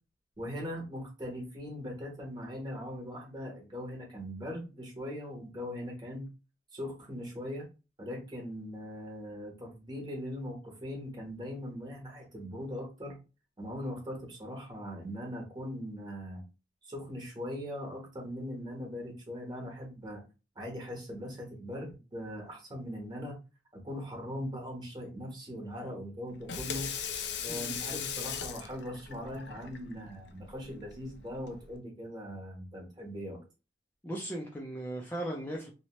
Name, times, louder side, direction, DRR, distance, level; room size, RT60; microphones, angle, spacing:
voice 1, 0.4-6.3 6.7-7.7 8.0-13.2 13.6-16.4 16.8-20.2 20.5-23.4 23.7-26.9 27.4-33.4, equal, 25° right, -1 dB, 1.1 m, -40 dB
Water tap faucet / Sink (filling or washing), 26.3-31.8, left 7 dB, 75° left, 0.4 m, -39 dB
voice 2, 34.0-35.7, right 1 dB, 10° left, -2 dB, 0.4 m, -37 dB
2.8 x 2.1 x 2.9 m, 0.30 s
head